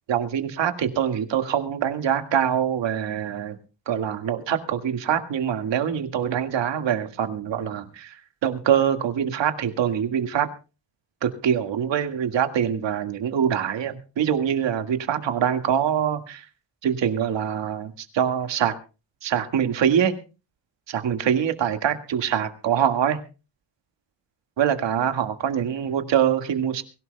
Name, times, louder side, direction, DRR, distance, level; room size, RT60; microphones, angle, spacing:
voice 1, 0.1-3.6 3.9-10.5 11.2-16.4 16.8-18.7 19.2-20.1 20.9-23.2 24.6-26.8, right 9 dB, 80° right, 7 dB, 1.9 m, -24 dB
23.5 x 16.0 x 2.2 m, 0.33 s
wide cardioid pair, 175°, 43 cm